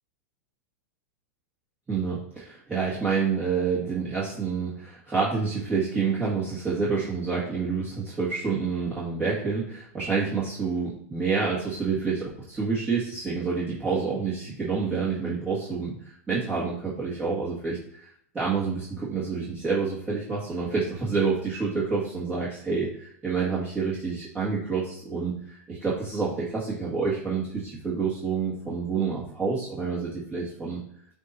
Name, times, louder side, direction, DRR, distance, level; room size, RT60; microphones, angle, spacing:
voice 1, 1.9-16.0 16.3-30.8, right 5 dB, 15° right, -10 dB, 1.8 m, -28 dB
8.1 x 2.7 x 4.3 m, 0.67 s
hypercardioid pair, 130°, 8 cm